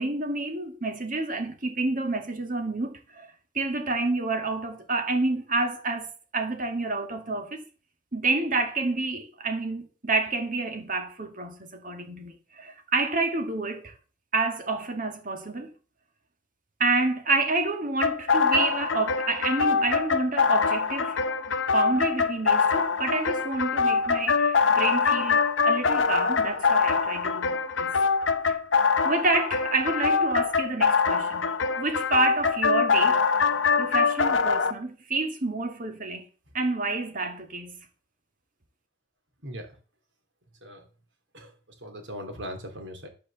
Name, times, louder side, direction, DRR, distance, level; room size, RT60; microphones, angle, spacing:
voice 1, 0.0-3.3 3.5-7.6 8.1-13.9 14.3-15.7 16.8-21.2 21.7-27.9 28.5-28.6 29.0-31.5 31.8-33.2 33.8-36.2 36.5-37.8, right 3 dB, 45° right, 2.0 m, -28 dB
sound 1, 18.0-34.7, left 5 dB, 80° left, 0.9 m, -24 dB
voice 2, 39.4-39.8 40.6-40.9 41.3-43.1, equal, 75° right, 3.2 m, -39 dB
12.5 x 5.1 x 6.9 m
head